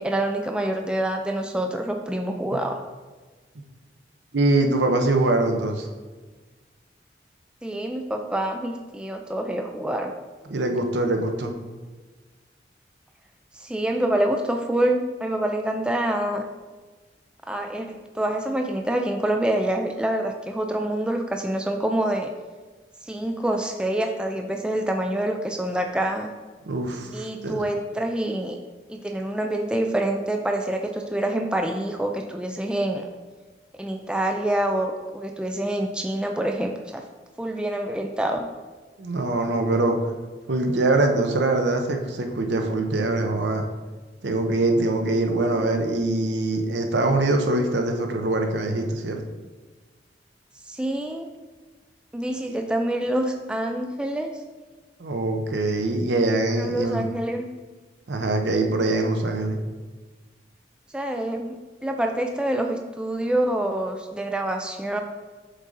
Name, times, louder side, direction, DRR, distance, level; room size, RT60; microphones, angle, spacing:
voice 1, 0.0-2.8 7.6-10.1 13.6-16.5 17.5-22.3 23.0-26.3 27.1-28.6 28.9-33.1 33.8-37.0 37.4-38.5 50.7-51.3 52.1-54.3 56.6-57.5 60.9-65.0, right 1 dB, 5° right, 4 dB, 0.3 m, -26 dB
voice 2, 4.3-5.9 10.5-11.5 26.7-27.6 39.0-40.0 40.5-43.6 44.2-49.2 55.0-57.1 58.1-59.6, right 2 dB, 85° right, 4 dB, 0.7 m, -23 dB
6.3 x 3.8 x 3.9 m, 1.3 s
head